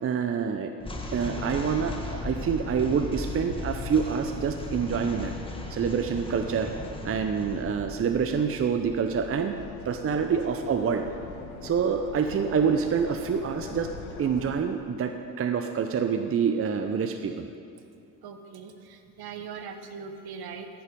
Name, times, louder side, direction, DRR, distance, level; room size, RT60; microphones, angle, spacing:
voice 1, 0.0-0.7 1.1-5.3 5.7-6.7 7.0-9.5 9.8-11.0 11.6-13.9 14.2-17.5, right 6 dB, 30° right, 7 dB, 0.7 m, -27 dB
sound 1, 0.8-12.1, left 2 dB, 10° left, 1.6 m, -38 dB
sound 2, 9.3-14.5, left 5 dB, 90° left, 1.2 m, -42 dB
voice 2, 18.2-20.7, right 6 dB, 55° right, 7 dB, 1.2 m, -40 dB
15.0 x 6.9 x 5.3 m, 2.4 s
hypercardioid pair, 65°, 44 cm